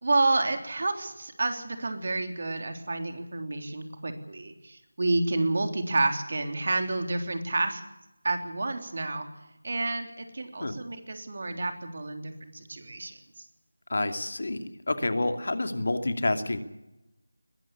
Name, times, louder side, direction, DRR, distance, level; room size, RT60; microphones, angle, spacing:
voice 1, 0.0-7.8 8.2-9.3 9.6-13.4, right 2 dB, 50° right, 6 dB, 3.5 m, -29 dB
voice 2, 13.9-14.6 14.9-16.6, left 2 dB, 60° left, 8 dB, 2.5 m, -28 dB
21.0 x 14.0 x 9.8 m, 0.95 s
figure-of-eight pair, 165°, 0 cm